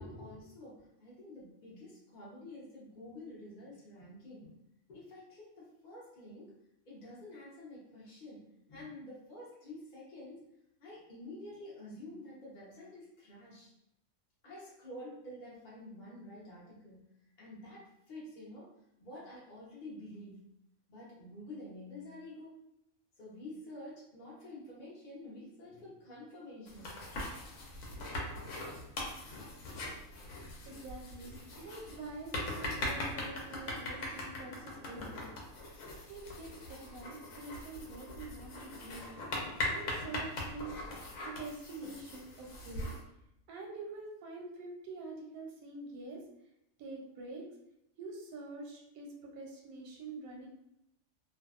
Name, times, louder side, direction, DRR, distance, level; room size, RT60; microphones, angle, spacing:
voice 1, 0.0-4.5 4.9-6.5 6.8-10.5 10.8-13.7 14.4-17.1 17.4-18.7 19.0-20.4 20.9-22.6 23.2-27.0, left 1 dB, 45° left, -6 dB, 0.7 m, -49 dB
sound 1, 26.7-43.0, left 1 dB, 75° left, 1.1 m, -41 dB
voice 2, 30.6-35.4 36.1-39.2 39.7-42.9 43.5-46.2 46.8-47.4 48.0-50.5, right 3 dB, 90° right, 0 dB, 1.1 m, -46 dB
2.6 x 2.2 x 2.3 m, 0.81 s
omnidirectional pair, 1.5 m